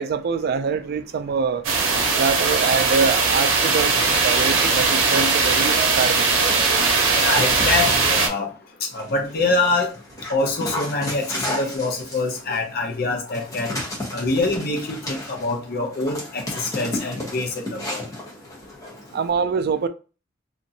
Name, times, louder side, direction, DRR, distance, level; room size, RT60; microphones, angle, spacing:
voice 1, 0.0-1.7 2.2-6.3 19.1-19.9, right 5 dB, 55° right, 0.3 m, -24 dB
sound 1, 1.6-8.3, right 4 dB, 85° right, 0.7 m, -19 dB
Dog, 3.8-6.7 7.3-8.3 8.9-19.3, left 1 dB, 20° left, 1.0 m, -34 dB
voice 2, 7.1-8.5 8.9-9.9 10.3-13.8 14.1-18.0, left 3 dB, 50° left, 0.7 m, -25 dB
3.0 x 2.5 x 2.7 m
head